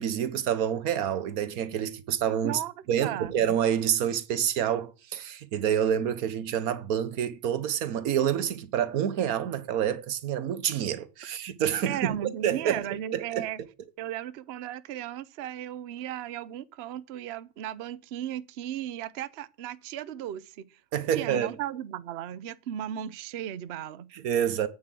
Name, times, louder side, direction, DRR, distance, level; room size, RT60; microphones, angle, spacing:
voice 1, 0.0-2.6 2.9-12.2 12.4-12.8 13.1-13.4 20.9-21.5 24.1-24.7, right 9 dB, 90° right, 1.4 m, -27 dB
voice 2, 2.4-3.3 11.9-13.6 14.0-20.7 21.1-24.1, right 11 dB, 55° right, 0.8 m, -36 dB
8.9 x 7.3 x 7.4 m
omnidirectional pair, 1.5 m